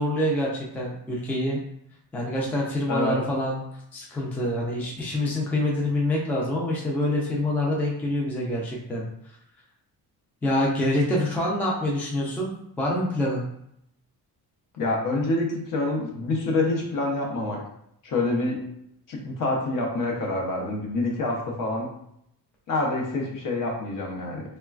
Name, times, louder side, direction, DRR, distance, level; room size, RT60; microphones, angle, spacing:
voice 1, 0.0-1.6 2.1-3.6 3.9-9.1 10.4-13.4, left 1 dB, 5° left, -3 dB, 0.3 m, -26 dB
voice 2, 14.8-17.6 18.0-18.6 19.1-21.9 22.7-24.4, left 2 dB, 55° left, -1 dB, 0.8 m, -26 dB
3.1 x 2.2 x 2.3 m, 0.75 s
cardioid pair, 140°, 39 cm